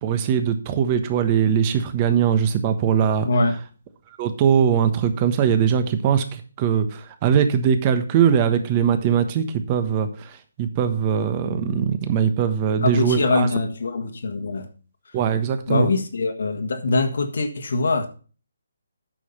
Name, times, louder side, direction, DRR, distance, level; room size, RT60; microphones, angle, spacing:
voice 1, 0.0-3.3 4.2-13.5 15.1-15.9, right 8 dB, 30° right, 1.2 m, -21 dB
voice 2, 3.2-3.6 12.8-14.7 15.7-18.1, left 3 dB, 65° left, 1.7 m, -23 dB
9.1 x 6.5 x 5.5 m
figure-of-eight pair, 145°, 0 cm